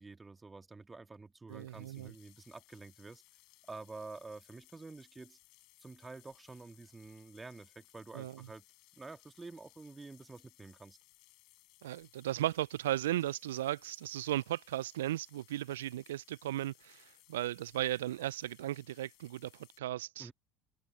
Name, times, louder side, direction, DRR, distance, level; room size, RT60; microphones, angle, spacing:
voice 1, 0.0-3.2 3.7-5.4 5.8-8.6 8.9-11.0 20.2-20.3, right 3 dB, 20° right, 2.5 m, -49 dB
sound 1, 1.5-19.8, left 22 dB, 60° left, 6.3 m, -64 dB
voice 2, 1.5-2.1 8.1-8.3 11.8-20.3, right 14 dB, 75° right, 0.6 m, -36 dB
figure-of-eight pair, 65°, 0 cm